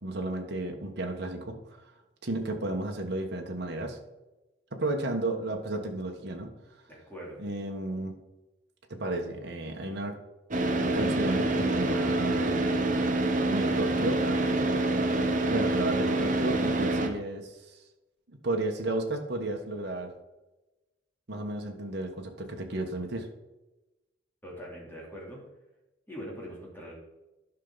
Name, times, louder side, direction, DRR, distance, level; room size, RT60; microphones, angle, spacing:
voice 1, 0.0-1.6 2.2-4.0 4.7-6.5 7.4-8.1 8.9-10.1 10.9-12.5 13.5-14.4 15.5-17.8 18.4-20.1 21.3-23.3, right 2 dB, 60° right, 2 dB, 1.3 m, -33 dB
voice 2, 6.9-7.4 24.4-25.4 26.1-26.9, equal, 10° left, -4 dB, 3.0 m, -42 dB
Car / Idling, 10.5-17.1, right 2 dB, 45° right, 1.0 m, -26 dB
11.5 x 5.9 x 4.0 m, 1.0 s
head